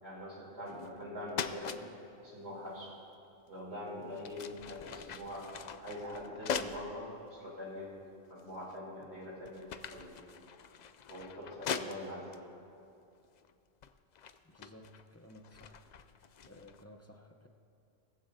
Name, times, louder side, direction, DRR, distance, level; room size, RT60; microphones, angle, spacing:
voice 1, 0.0-1.8 2.2-3.1 3.5-8.0 8.3-10.1 11.1-12.3, left 1 dB, 55° right, -5 dB, 3.7 m, -44 dB
sound 1, 0.7-1.0 1.3-1.8 3.5-3.6 4.1-6.9 7.6-7.7 8.4-8.9 9.2-12.4 13.2-13.5 13.8-16.8, left 6 dB, 75° left, 0.4 m, -42 dB
voice 2, 14.5-15.9 16.5-17.5, left 1 dB, 15° left, 1 dB, 0.6 m, -55 dB
20.5 x 15.0 x 2.7 m, 2.6 s
omnidirectional pair, 1.3 m